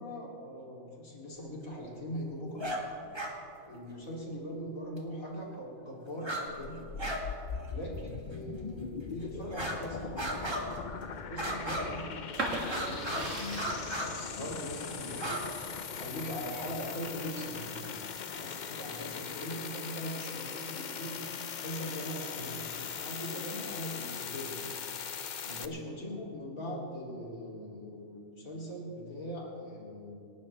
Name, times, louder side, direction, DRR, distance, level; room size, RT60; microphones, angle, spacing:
voice 1, 0.0-2.7 3.7-6.9 7.7-13.8 14.1-18.1 18.3-24.6 25.4-30.1, equal, 75° left, -3 dB, 3.3 m, -41 dB
sound 1, 2.6-2.8 3.1-3.3 5.0-5.1 6.2-6.5 6.7-7.2 7.5-7.7 8.3-8.4 9.5-9.8 10.2-10.8 11.4-12.1 12.6-13.3 13.5-14.1 15.1-15.4, right 1 dB, 20° right, 1.6 m, -35 dB
sound 2, 6.5-25.7, left 6 dB, 50° left, 0.5 m, -40 dB
sound 3, 12.3-18.0 18.4-19.3, right 2 dB, 65° right, 2.6 m, -39 dB
26.5 x 12.5 x 3.3 m, 2.6 s
omnidirectional pair, 1.4 m